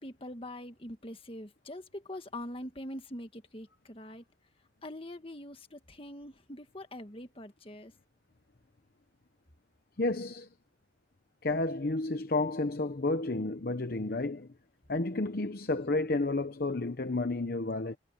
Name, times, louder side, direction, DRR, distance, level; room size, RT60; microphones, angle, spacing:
voice 1, 0.0-4.2 4.8-7.9, left 1 dB, 30° left, 1.8 m, -43 dB
voice 2, 10.0-10.5 11.4-14.5 14.9-18.0, left 2 dB, 50° left, 0.8 m, -31 dB
head